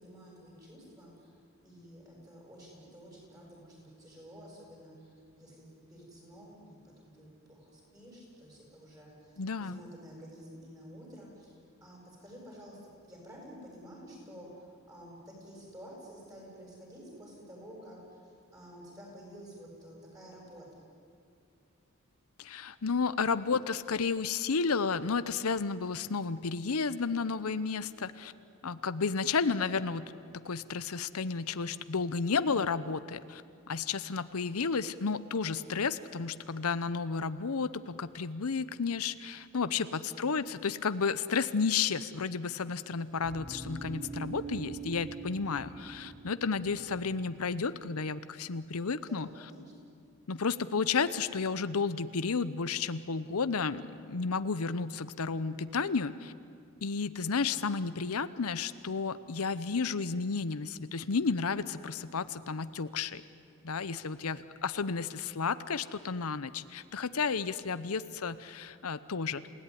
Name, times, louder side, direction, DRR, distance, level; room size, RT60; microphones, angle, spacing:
voice 1, 0.0-1.4 1.6-12.8 13.0-20.8 35.4-35.7 39.5-40.2 48.9-49.7, equal, 15° right, -2 dB, 7.8 m, -51 dB
voice 2, 9.4-9.8 22.4-28.3 28.6-33.4 33.7-49.3 50.3-56.3 56.8-63.2 63.6-69.5, left 5 dB, 90° left, 14 dB, 0.8 m, -32 dB
sound 1, 43.2-47.4, right 4 dB, 40° right, 2.4 m, -43 dB
28.5 x 17.5 x 9.9 m, 2.4 s
head